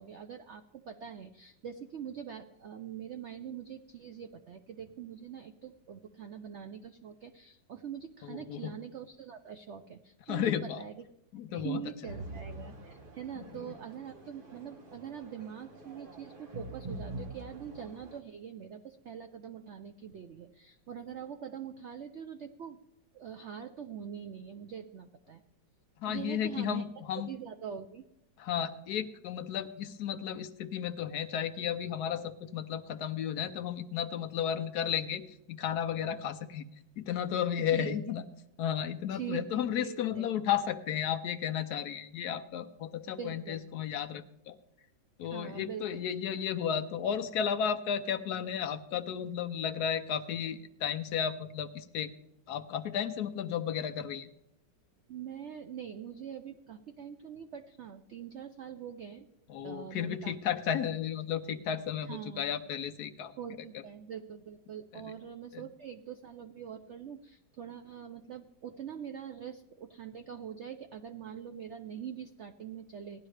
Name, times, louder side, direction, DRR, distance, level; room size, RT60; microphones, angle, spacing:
voice 1, 0.0-11.0 11.5-22.8 23.1-25.4 26.0-26.8 27.3-28.0 37.7-38.2 39.1-40.3 43.2-43.6 45.3-45.8 55.1-59.3 59.6-60.3 62.0-62.6 63.4-73.3, right 8 dB, 80° right, 8 dB, 0.6 m, -43 dB
voice 2, 8.2-8.7 10.3-10.8 11.3-11.8 13.5-13.7 26.0-27.3 28.4-36.7 37.0-38.2 38.6-44.6 45.2-52.1 52.5-54.3 59.5-63.3 64.9-65.0 65.5-65.7, left 9 dB, 70° left, 8 dB, 1.1 m, -33 dB
sound 1, 12.1-18.2, right 2 dB, 35° right, 1.1 m, -45 dB
17.5 x 11.0 x 3.2 m, 0.81 s
omnidirectional pair, 1.9 m